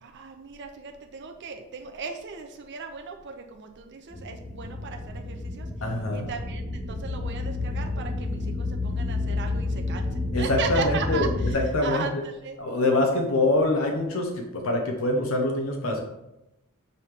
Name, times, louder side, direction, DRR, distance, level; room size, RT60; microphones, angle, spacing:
voice 1, 0.0-5.7 6.1-12.6, right 5 dB, 55° right, 4 dB, 0.6 m, -37 dB
sound 1, 4.1-11.5, left 2 dB, 5° right, 0.8 m, -30 dB
voice 2, 5.8-6.3 10.3-11.3 11.5-12.0 12.6-16.0, left 2 dB, 70° left, 2 dB, 0.8 m, -24 dB
5.4 x 3.2 x 5.6 m, 0.91 s
head